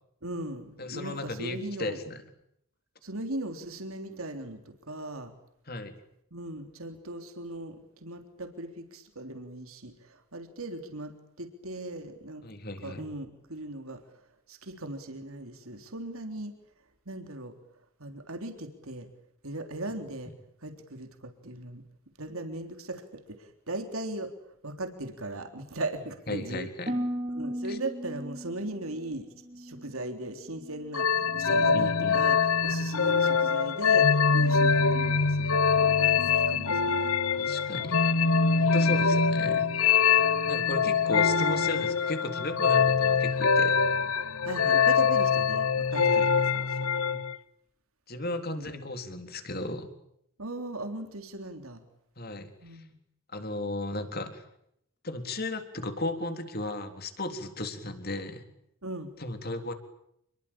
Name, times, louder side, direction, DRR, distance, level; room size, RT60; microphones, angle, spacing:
voice 1, 0.2-2.0 3.0-5.3 6.3-12.5 12.8-14.0 14.5-16.5 17.1-17.5 18.0-19.1 19.4-20.3 20.6-21.8 22.2-24.3 24.6-26.7 27.3-29.3 29.5-32.4 32.6-37.1 38.8-38.9 40.6-41.0 44.4-46.2 46.5-47.2 48.6-48.7 50.4-51.8 52.6-53.0 58.8-59.1, right 2 dB, 75° right, 6 dB, 3.6 m, -38 dB
voice 2, 0.8-2.2 5.7-5.9 12.4-13.0 26.3-26.9 27.7-27.8 31.4-32.2 37.4-38.0 38.6-39.7 40.5-43.8 46.0-46.3 48.1-49.9 52.2-52.8 53.3-54.4 55.0-58.4 59.2-59.7, left 2 dB, 45° left, 7 dB, 3.8 m, -35 dB
Harp, 26.9-31.0 31.3-31.8 32.3-32.6, equal, 30° right, 3.3 m, -37 dB
sound 1, 30.9-47.4, left 5 dB, 80° left, 1.1 m, -24 dB
28.5 x 22.5 x 8.8 m, 0.75 s
head